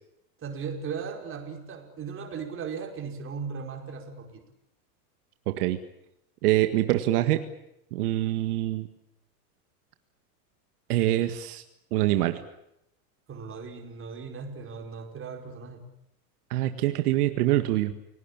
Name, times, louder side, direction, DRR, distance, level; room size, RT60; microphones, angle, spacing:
voice 1, 0.4-4.4 13.3-15.9, right 6 dB, 25° right, 4 dB, 5.2 m, -37 dB
voice 2, 5.5-5.8 6.4-7.4 7.9-8.9 10.9-11.6 11.9-12.4 16.5-17.9, right 15 dB, 70° right, 8 dB, 1.9 m, -24 dB
29.5 x 18.5 x 8.8 m, 0.81 s
supercardioid pair, 130°, 47 cm